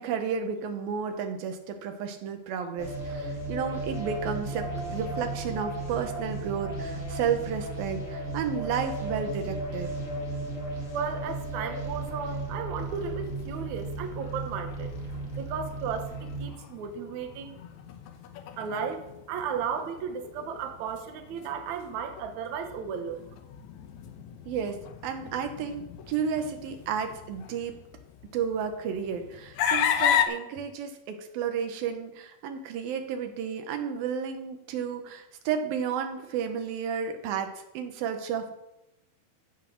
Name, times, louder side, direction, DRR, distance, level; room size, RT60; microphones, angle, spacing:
voice 1, 0.0-9.9 24.5-27.8 28.3-38.5, right 7 dB, 85° right, 6 dB, 3.0 m, -32 dB
sound 1, 2.8-16.5, right 2 dB, 25° left, 2.0 m, -35 dB
voice 2, 10.9-14.9 15.4-17.6 18.6-23.2, right 6 dB, 65° right, 6 dB, 2.4 m, -34 dB
sound 2, 12.8-30.3, left 9 dB, 70° left, 1.9 m, -35 dB
15.0 x 6.0 x 6.4 m, 0.88 s
omnidirectional pair, 4.0 m